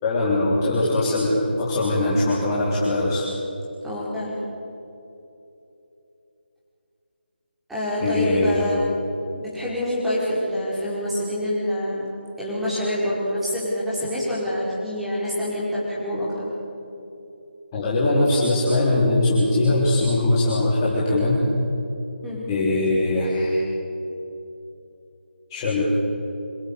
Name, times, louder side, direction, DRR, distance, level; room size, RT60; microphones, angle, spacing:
voice 1, 0.0-3.3 8.0-8.6 17.7-21.4 22.5-23.6 25.5-25.8, left 2 dB, 20° left, -8 dB, 4.1 m, -21 dB
voice 2, 3.8-4.3 7.7-8.9 9.3-16.5 22.2-22.5, left 1 dB, 5° right, -9 dB, 5.4 m, -26 dB
27.0 x 16.0 x 8.5 m, 2.9 s
figure-of-eight pair, 160°, 6 cm